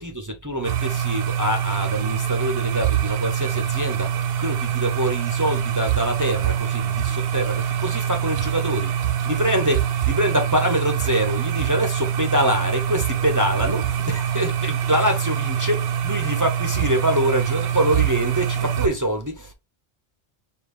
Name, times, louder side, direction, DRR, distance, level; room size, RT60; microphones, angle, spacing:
voice 1, 0.0-19.5, equal, 20° right, 0.5 m, -25 dB
sound 1, 0.6-18.9, right 9 dB, 65° right, 0.7 m, -24 dB
5.0 x 2.4 x 3.2 m
omnidirectional pair, 1.1 m